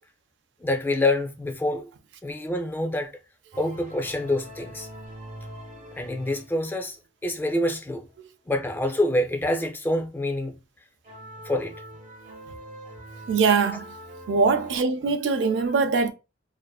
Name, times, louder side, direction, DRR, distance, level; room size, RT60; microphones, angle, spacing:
voice 1, 0.6-1.9 2.2-3.1 3.6-4.9 6.0-7.0 7.2-8.1 8.5-10.6 11.4-11.7, left 1 dB, 10° left, 0.3 m, -26 dB
sound 1, 3.5-6.9 7.5-7.6 8.7-8.8 11.0-14.8, right 1 dB, 45° right, 0.7 m, -43 dB
voice 2, 13.3-13.8 14.3-16.1, right 4 dB, 80° right, 0.4 m, -22 dB
2.5 x 2.4 x 2.2 m
head